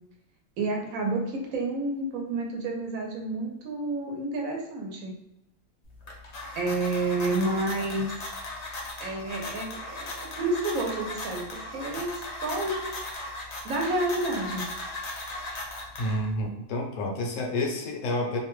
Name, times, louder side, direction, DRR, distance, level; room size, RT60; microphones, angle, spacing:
voice 1, 0.6-5.1 6.6-8.1 9.0-12.9 13.6-14.6, right 2 dB, 75° right, 0 dB, 1.1 m, -30 dB
sound 1, 5.8-16.5, left 2 dB, 90° left, 0.3 m, -37 dB
voice 2, 16.0-18.4, left 1 dB, 70° left, 1 dB, 0.9 m, -29 dB
2.6 x 2.2 x 3.0 m, 0.85 s
omnidirectional pair, 1.4 m